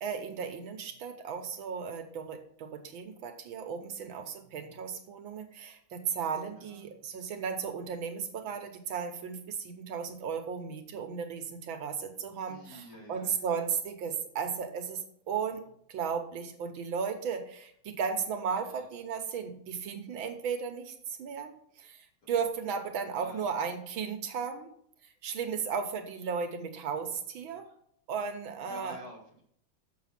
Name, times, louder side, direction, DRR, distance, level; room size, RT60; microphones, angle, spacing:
voice 1, 0.0-15.6 15.9-21.5 21.8-24.7 25.2-27.7 28.1-29.0, right 6 dB, 70° right, 6 dB, 1.7 m, -35 dB
voice 2, 6.6-6.9 12.4-13.4 18.5-18.9 23.1-23.5 28.6-29.4, left 1 dB, 50° left, -3 dB, 3.3 m, -49 dB
6.8 x 6.5 x 5.9 m, 0.66 s
omnidirectional pair, 2.3 m